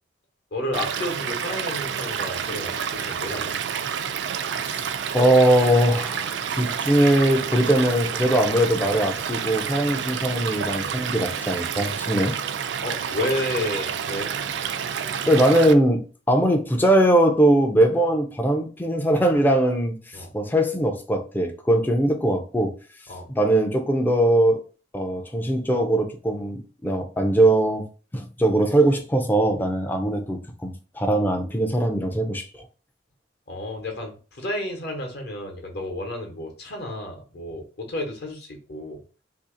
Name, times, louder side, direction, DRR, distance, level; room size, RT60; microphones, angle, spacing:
voice 1, 0.5-3.6 12.8-14.3 20.1-20.3 23.1-23.3 33.5-39.0, left 1 dB, 60° left, 1.0 m, -31 dB
Stream / Liquid, 0.7-15.7, right 7 dB, 65° right, 0.3 m, -29 dB
voice 2, 4.6-6.3 6.6-12.4 15.3-22.7 23.3-24.6 24.9-27.8 28.1-32.6, right 1 dB, 10° left, 0.4 m, -21 dB
2.7 x 2.7 x 3.7 m
head